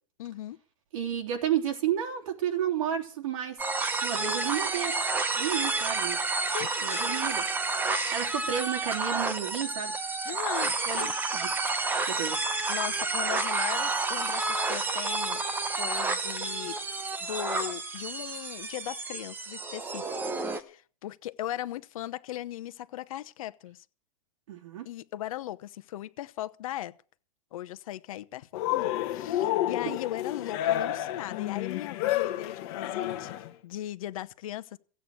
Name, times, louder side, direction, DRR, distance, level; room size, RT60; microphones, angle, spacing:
voice 1, 0.2-0.6 5.4-5.7 6.5-7.1 10.2-11.2 12.1-12.2 12.7-16.8 17.2-20.1 20.5-23.8 24.8-26.9 27.5-33.3 33.6-34.8, left 13 dB, 70° left, 0.9 m, -38 dB
voice 2, 0.9-3.6 4.0-5.0 5.4-6.2 6.8-7.5 8.0-9.9 10.9-11.5 12.0-12.4 24.5-24.9 29.8-30.0, right 9 dB, 60° right, 3.2 m, -31 dB
sound 1, 3.6-20.6, right 3 dB, 10° right, 0.9 m, -30 dB
sound 2, 11.6-18.0, left 3 dB, 5° left, 3.9 m, -53 dB
Cheering, 28.5-33.5, left 13 dB, 45° left, 1.4 m, -30 dB
16.0 x 8.6 x 7.8 m
supercardioid pair, 160°, 19 cm